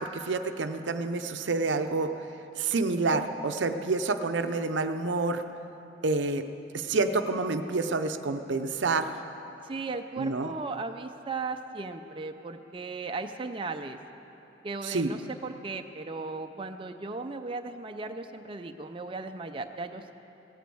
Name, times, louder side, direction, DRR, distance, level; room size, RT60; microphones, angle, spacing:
voice 1, 0.0-2.1 2.6-5.4 6.0-6.4 6.7-9.1 10.2-10.5 14.8-15.1, right 3 dB, 85° right, 8 dB, 0.7 m, -28 dB
voice 2, 9.6-14.0 14.6-20.1, right 3 dB, 30° right, 6 dB, 0.5 m, -36 dB
17.0 x 8.4 x 7.7 m, 3.0 s
head